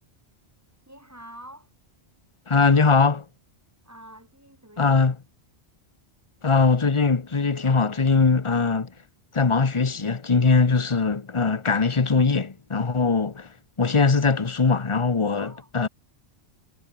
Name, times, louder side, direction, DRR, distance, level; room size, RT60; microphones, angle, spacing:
voice 1, 0.9-1.7 3.8-5.0 13.9-14.0 15.4-15.7, right 1 dB, 15° right, 4.4 m, -46 dB
voice 2, 2.5-3.2 4.8-5.2 6.4-8.9 9.3-13.5 13.8-15.9, left 4 dB, 30° left, 1.1 m, -21 dB
omnidirectional pair, 1.1 m